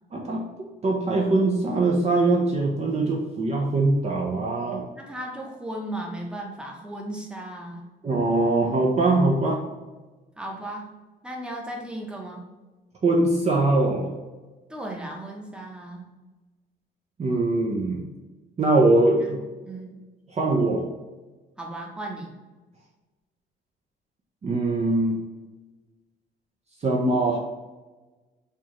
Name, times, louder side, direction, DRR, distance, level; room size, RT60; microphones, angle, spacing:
voice 1, 0.1-0.5 0.8-4.8 8.0-9.6 13.0-14.1 17.2-18.0 18.6-19.4 20.3-20.8 24.4-25.2 26.8-27.4, right 2 dB, 35° right, -2 dB, 0.6 m, -22 dB
voice 2, 5.0-7.8 10.4-10.9 11.2-12.4 14.7-16.1 19.2-20.0 21.6-22.3, right 1 dB, 5° right, -1 dB, 0.8 m, -36 dB
4.5 x 2.4 x 3.0 m, 1.2 s
cardioid pair, 90°, 20 cm